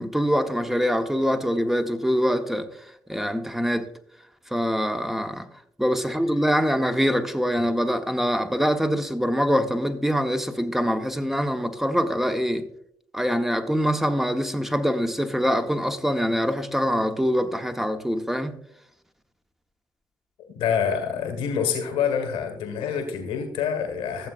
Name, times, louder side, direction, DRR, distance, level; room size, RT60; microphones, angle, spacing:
voice 1, 0.0-2.7 3.1-3.9 4.5-5.5 5.8-12.7 13.1-18.6, equal, 5° right, 1.1 m, -24 dB
voice 2, 20.4-24.3, left 7 dB, 80° left, 1.6 m, -26 dB
15.0 x 7.3 x 2.5 m
hypercardioid pair, 50°, 9 cm